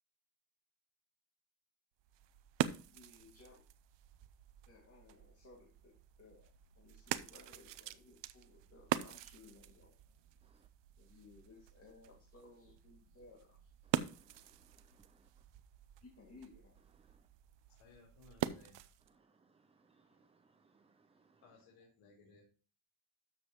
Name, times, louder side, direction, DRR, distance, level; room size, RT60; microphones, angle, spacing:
sound 1, 2.0-19.1, right 12 dB, 65° right, 0.7 m, -44 dB
voice 1, 2.9-3.6 4.7-10.0 10.9-13.7 16.0-16.8 20.0-20.3, left 3 dB, 30° left, 2.2 m, -60 dB
voice 2, 14.0-15.3 19.2-21.4, right 4 dB, 15° right, 0.4 m, -70 dB
voice 3, 17.7-18.9 21.4-22.4, left 4 dB, 80° left, 3.9 m, -63 dB
13.0 x 7.2 x 3.0 m
cardioid pair, 170°, 48 cm